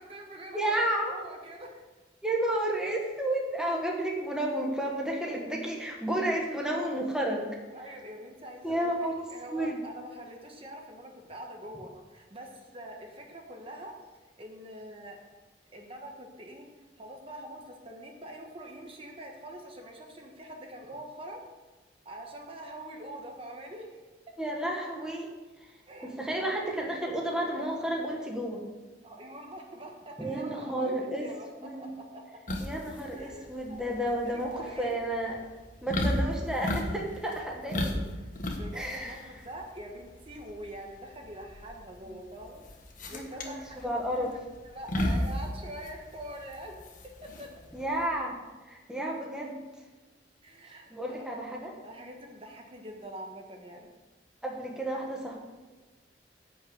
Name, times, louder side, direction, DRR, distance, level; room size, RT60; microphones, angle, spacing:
voice 1, 0.0-0.8 1.1-1.8 5.3-5.5 7.7-13.9 14.4-15.2 15.7-16.7 17.0-21.4 22.0-24.0 25.9-26.1 29.0-31.0 31.2-32.2 33.1-33.8 34.3-35.0 38.5-42.6 43.1-44.2 44.7-46.7 47.2-47.5 50.4-53.9, right 1 dB, 30° right, 1 dB, 1.3 m, -44 dB
voice 2, 0.5-1.1 2.2-7.5 8.6-9.8 24.4-25.3 26.0-28.6 30.2-31.3 31.6-31.9 32.6-35.4 35.8-38.0 38.7-39.2 43.1-44.3 47.7-48.4 48.7-49.6 50.9-51.7 54.4-55.4, right 1 dB, 5° right, -1 dB, 1.4 m, -31 dB
sound 1, 32.5-48.0, left 1 dB, 50° left, 1.4 m, -35 dB
11.0 x 5.7 x 8.0 m, 1.2 s
head